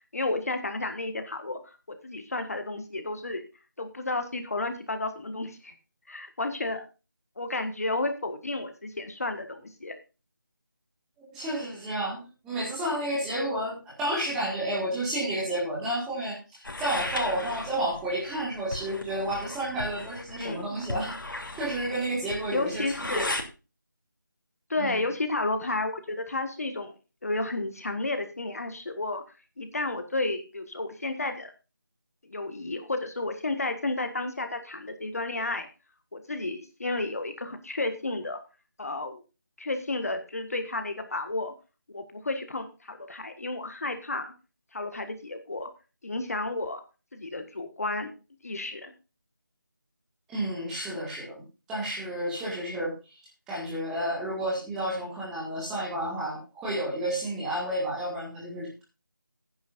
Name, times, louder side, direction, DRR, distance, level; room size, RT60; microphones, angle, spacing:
voice 1, 0.1-3.4 3.8-5.7 6.1-6.8 7.4-9.9 20.4-20.7 22.5-23.3 24.7-26.9 27.2-29.2 29.6-31.5 32.3-35.7 36.1-38.4 38.8-39.2 39.6-41.5 41.9-44.3 44.7-45.7 46.0-46.8 47.1-48.1 48.4-48.9, left 2 dB, 45° left, 7 dB, 1.6 m, -32 dB
voice 2, 11.3-21.1 21.6-23.2 24.8-25.0 50.3-51.4 51.7-52.9 53.5-58.8, right 1 dB, 5° right, -6 dB, 1.8 m, -31 dB
sound 1, 16.6-23.5, left 1 dB, 75° left, 3.0 m, -36 dB
15.5 x 9.6 x 2.6 m, 0.30 s
figure-of-eight pair, 175°, 11 cm